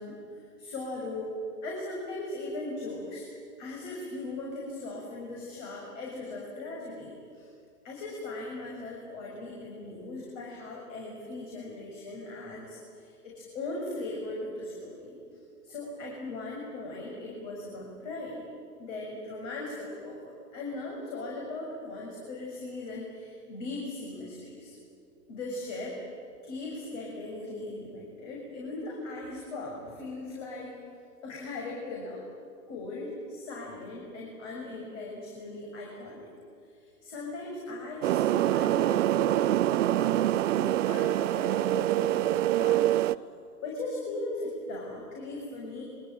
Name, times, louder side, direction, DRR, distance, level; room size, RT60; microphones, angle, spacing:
voice 1, 0.0-1.3 1.6-3.3 3.6-7.5 7.8-18.3 18.8-24.8 25.3-26.0 26.4-30.8 31.2-32.2 32.7-36.3 36.7-42.9 43.6-45.8, left 2 dB, 50° left, -2 dB, 6.6 m, -39 dB
sound 1, 38.0-43.1, right 14 dB, 50° right, 0.7 m, -25 dB
25.5 x 23.5 x 9.3 m, 2.4 s
figure-of-eight pair, 110°, 48 cm